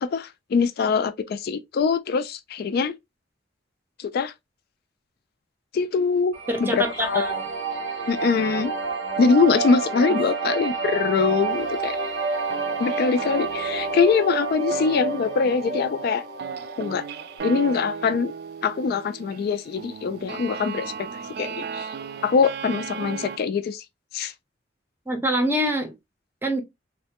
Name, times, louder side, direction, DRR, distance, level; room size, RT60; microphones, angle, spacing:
voice 1, 0.0-2.9 4.0-4.3 5.7-6.3 6.6-7.3 8.1-8.7 9.2-12.0 12.8-16.2 16.8-17.0 17.4-18.3 18.6-21.1 21.4-21.9 22.2-23.8 24.1-24.3, left 5 dB, 55° left, 0.3 m, -23 dB
sound 1, 6.3-17.4, right 4 dB, 90° right, 1.0 m, -29 dB
voice 2, 6.5-7.4 25.1-25.9 26.4-26.6, right 1 dB, 10° right, 0.6 m, -25 dB
sound 2, 11.5-12.2 12.5-23.4, right 6 dB, 60° right, 0.3 m, -37 dB
3.2 x 2.1 x 2.7 m
head